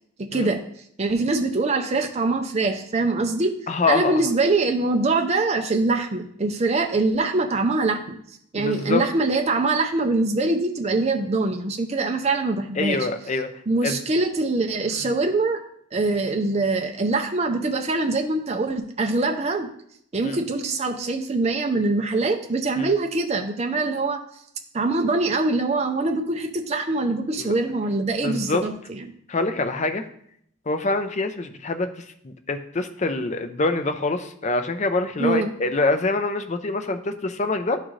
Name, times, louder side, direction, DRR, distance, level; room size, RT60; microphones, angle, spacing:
voice 1, 0.2-0.6 1.0-3.6 3.9-8.2 8.5-13.1 13.7-15.6 15.9-19.7 20.1-24.2 24.7-29.1 35.2-35.5, right 3 dB, 30° right, 4 dB, 0.5 m, -23 dB
voice 2, 3.7-4.3 8.6-9.0 12.8-13.5 13.8-14.0 20.2-20.4 22.8-22.9 27.4-27.5 28.2-28.6 29.3-30.1 30.7-31.9 32.2-37.8, left 3 dB, 30° left, 8 dB, 0.5 m, -25 dB
11.0 x 3.7 x 3.1 m, 0.69 s
head